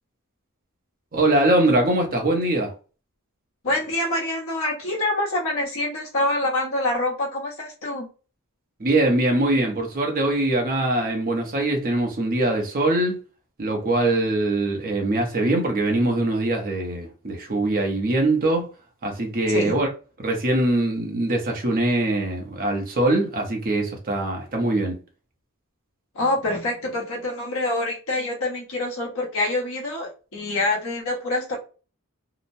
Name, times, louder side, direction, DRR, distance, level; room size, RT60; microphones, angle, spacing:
voice 1, 1.1-2.7 8.8-13.2 13.6-18.7 19.0-19.9 20.2-25.0, right 2 dB, 40° right, 0.8 m, -22 dB
voice 2, 3.6-8.1 19.5-19.8 26.1-31.6, left 2 dB, 65° left, 1.0 m, -26 dB
2.8 x 2.1 x 2.6 m
head